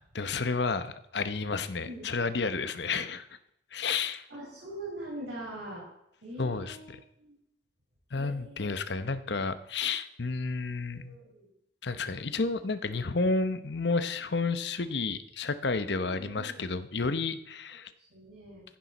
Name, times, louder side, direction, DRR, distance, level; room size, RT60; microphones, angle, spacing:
voice 1, 0.0-3.3 3.7-4.2 6.4-7.0 8.1-11.2 11.8-17.9, left 4 dB, 65° left, 12 dB, 0.9 m, -31 dB
voice 2, 4.3-5.9 6.2-7.4 8.2-8.7 10.9-11.5 14.9-15.1 15.9-16.6 18.0-18.6, right 1 dB, 70° right, -4 dB, 5.2 m, -43 dB
15.0 x 10.5 x 4.1 m, 0.80 s
head